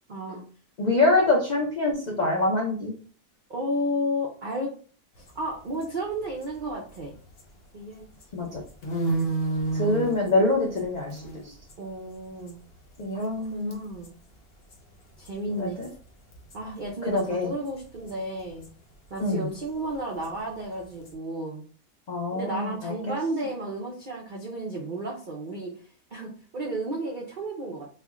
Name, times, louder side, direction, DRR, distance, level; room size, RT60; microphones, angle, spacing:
voice 1, 0.1-0.4 3.5-4.7 5.4-7.1 7.7-8.0 8.4-8.5 11.8-12.6 13.1-14.1 15.2-15.8 16.5-18.7 19.1-21.6 22.3-25.7 26.1-27.8, right 1 dB, 85° right, -2 dB, 0.4 m, -32 dB
voice 2, 0.8-2.9 8.3-8.6 9.7-11.5 13.0-13.8 15.5-15.9 17.1-17.5 19.2-19.5 22.1-22.9, left 2 dB, 80° left, -2 dB, 0.4 m, -25 dB
sound 1, 5.2-7.7 8.0-13.4 13.7-14.1 14.4-14.5 14.7-17.3 17.5-21.1, right 3 dB, 45° left, 0.9 m, -33 dB
3.3 x 2.1 x 3.5 m, 0.42 s
omnidirectional pair, 1.7 m